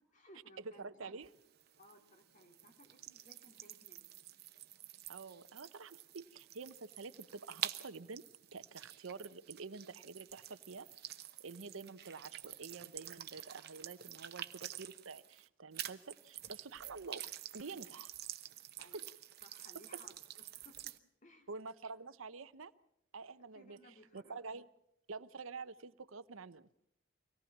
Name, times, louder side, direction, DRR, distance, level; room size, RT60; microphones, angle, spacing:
voice 1, 0.0-1.1 1.8-4.1 18.8-19.1 19.4-20.9 21.2-21.5 23.4-24.4, left 1 dB, 40° left, 4 dB, 2.8 m, -61 dB
voice 2, 0.6-1.3 5.1-8.2 8.5-10.9 11.4-17.2 17.5-18.1 18.8-19.0 21.5-22.7 23.1-23.8 24.1-24.7 25.1-26.7, right 4 dB, 85° right, 14 dB, 0.8 m, -48 dB
sound 1, 1.2-15.5 15.7-21.0, right 12 dB, 50° right, 0.9 m, -48 dB
24.5 x 18.0 x 7.3 m, 0.81 s
head